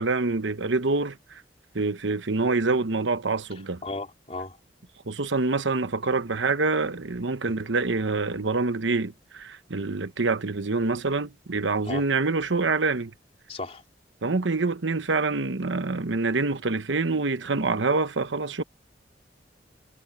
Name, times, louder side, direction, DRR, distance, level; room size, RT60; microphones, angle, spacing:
voice 1, 0.0-1.4 1.7-3.8 5.1-13.1 14.2-18.6, right 3 dB, 90° right, 1.1 m, -26 dB
voice 2, 3.5-4.6 7.4-7.5 11.8-12.0 13.5-13.8, left 2 dB, 35° left, 3.8 m, -36 dB
head